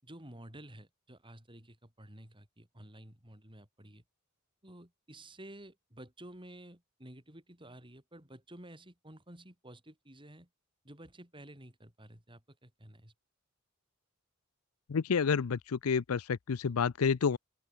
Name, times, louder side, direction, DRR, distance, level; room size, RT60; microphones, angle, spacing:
voice 1, 0.0-4.0 4.6-10.5 10.8-13.1, right 1 dB, 25° right, 6.3 m, -52 dB
voice 2, 14.9-17.4, left 6 dB, 90° left, 0.5 m, -29 dB
open air
head